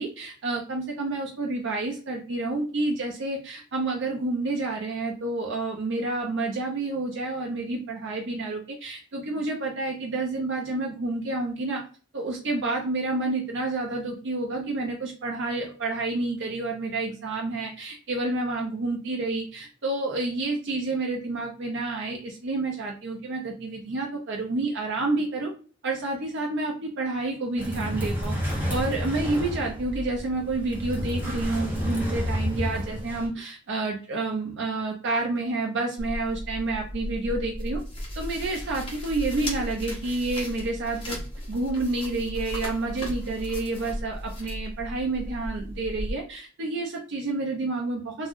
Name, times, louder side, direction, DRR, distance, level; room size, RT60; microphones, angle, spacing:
voice 1, 0.0-11.8 12.1-25.5 25.8-28.4 28.7-37.8 38.2-41.2 41.5-48.3, right 2 dB, 60° right, 0 dB, 0.5 m, -29 dB
sound 1, 27.6-33.3, equal, 10° right, 0.9 m, -30 dB
sound 2, 36.0-46.1, equal, 25° left, 0.9 m, -35 dB
2.5 x 2.2 x 3.5 m, 0.39 s
head